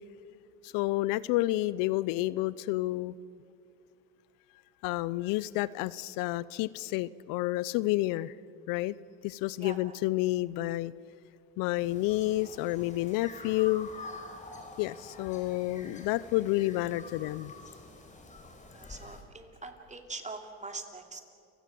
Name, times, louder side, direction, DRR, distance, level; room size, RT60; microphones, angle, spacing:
voice 1, 0.6-3.1 4.8-8.3 8.7-8.9 9.2-10.9 11.6-13.9 14.8-17.5, left 17 dB, 75° left, 20 dB, 0.6 m, -30 dB
voice 2, 9.6-9.9 18.7-21.2, right 3 dB, 20° right, 5 dB, 3.1 m, -43 dB
sound 1, 11.8-19.2, left 3 dB, 20° left, 4.3 m, -48 dB
29.5 x 16.5 x 7.6 m, 2.4 s
supercardioid pair, 85°, 34 cm